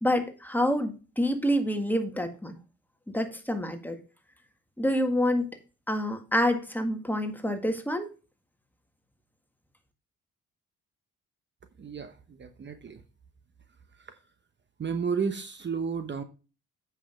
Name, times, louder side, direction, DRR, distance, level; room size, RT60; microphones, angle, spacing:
voice 1, 0.0-2.6 3.1-4.0 4.8-5.5 5.9-8.1, equal, 5° left, 1.8 m, -27 dB
voice 2, 11.8-13.0 14.0-14.1 14.8-16.2, right 6 dB, 35° right, 1.1 m, -32 dB
8.4 x 5.7 x 5.1 m
cardioid pair, 90°, 30 cm